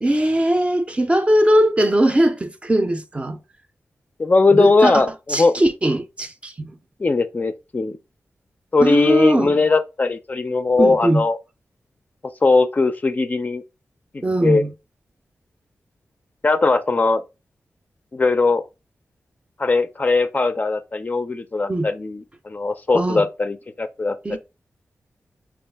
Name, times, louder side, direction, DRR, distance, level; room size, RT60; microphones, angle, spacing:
voice 1, 0.0-3.4 4.5-5.0 5.3-6.7 8.8-9.5 10.8-11.2 14.2-14.7 21.7-21.9 22.9-23.2 24.2-24.4, right 1 dB, 25° right, 0.5 m, -20 dB
voice 2, 4.2-5.6 7.0-8.0 8.7-11.4 12.4-13.6 14.1-14.6 16.4-17.2 18.1-18.6 19.6-24.4, left 3 dB, 35° left, 0.4 m, -19 dB
4.4 x 2.4 x 3.3 m
wide cardioid pair, 75°, 5 cm